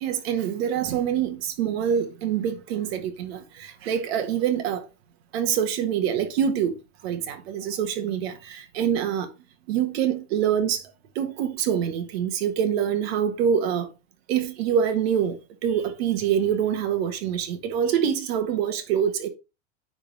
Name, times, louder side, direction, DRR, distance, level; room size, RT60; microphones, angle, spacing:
voice 1, 0.0-4.9 5.3-6.7 7.0-9.3 9.7-10.8 11.1-13.9 14.3-19.3, right 8 dB, 60° right, 1.6 m, -25 dB
9.7 x 3.8 x 4.0 m
supercardioid pair, 165°, 36 cm